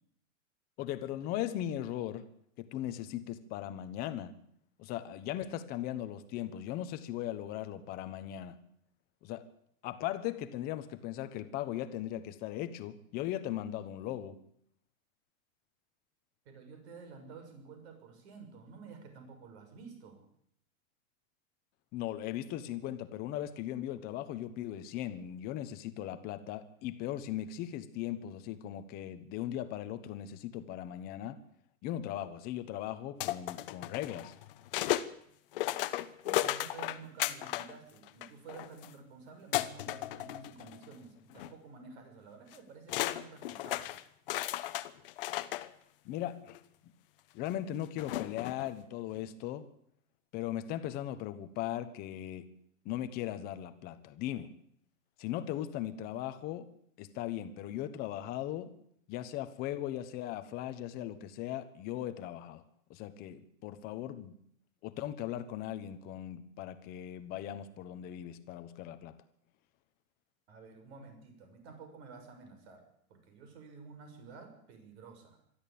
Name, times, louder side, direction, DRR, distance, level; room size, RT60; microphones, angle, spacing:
voice 1, 0.8-2.2 2.6-4.3 4.8-8.6 9.2-9.4 9.8-14.4 21.9-31.4 31.8-34.3 46.0-46.5 47.3-49.7 50.3-52.5 52.8-54.5 55.2-56.7 57.0-58.7 59.1-62.6 62.9-64.3 64.8-69.1, left 12 dB, 20° left, 11 dB, 1.1 m, -38 dB
voice 2, 16.4-20.2 36.2-43.9 70.5-75.4, right 5 dB, 50° right, 6 dB, 6.5 m, -51 dB
sound 1, 33.2-35.1 35.5-37.7 38.0-38.9 39.5-40.9 41.3-41.5 42.5-42.6 42.9-45.7 46.5-46.6 48.0-48.7, left 15 dB, 40° left, 1.0 m, -35 dB
22.5 x 13.5 x 8.7 m, 0.69 s
supercardioid pair, 170°, 42 cm